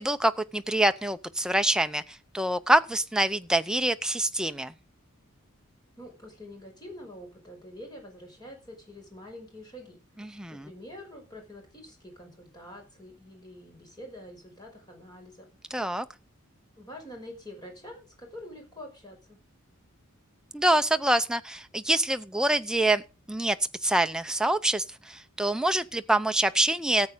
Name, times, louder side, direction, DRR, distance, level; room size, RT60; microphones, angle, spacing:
voice 1, 0.0-2.0 2.3-4.7 10.2-10.7 15.7-16.1 20.5-23.0 23.3-23.6 23.8-27.1, right 1 dB, 5° right, 0.6 m, -25 dB
voice 2, 6.0-10.0 10.5-15.5 16.8-19.4, left 1 dB, 20° left, 5.4 m, -46 dB
14.0 x 8.4 x 5.1 m
head